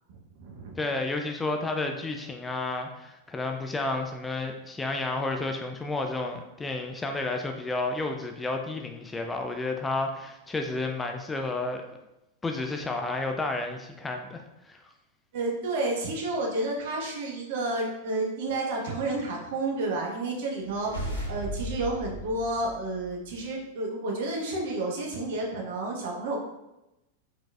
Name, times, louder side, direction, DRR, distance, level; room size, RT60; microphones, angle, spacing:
voice 1, 0.1-0.8 15.3-26.4, right 2 dB, 55° right, -1 dB, 1.0 m, -31 dB
voice 2, 0.8-11.8 12.4-14.8, left 2 dB, 10° left, 3 dB, 0.4 m, -31 dB
sound 1, 20.6-23.4, equal, 80° left, 0.9 m, -36 dB
4.6 x 3.9 x 2.3 m, 0.93 s
figure-of-eight pair, 90°, 0 cm